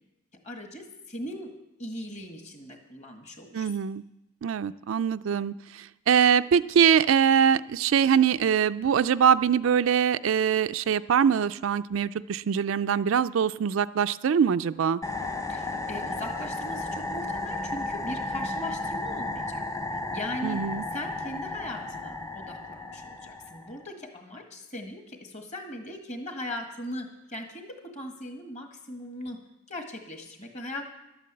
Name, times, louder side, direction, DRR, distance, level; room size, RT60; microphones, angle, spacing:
voice 1, 0.4-1.5 1.8-3.8 15.5-19.6 19.9-20.6 20.9-29.4 29.7-30.8, left 1 dB, 35° left, 4 dB, 1.8 m, -39 dB
voice 2, 3.5-4.0 4.4-15.0 20.4-20.8, right 7 dB, 70° right, 13 dB, 0.3 m, -23 dB
sound 1, 15.0-23.8, left 2 dB, 15° left, 0.6 m, -34 dB
12.0 x 9.1 x 7.7 m, 0.94 s
head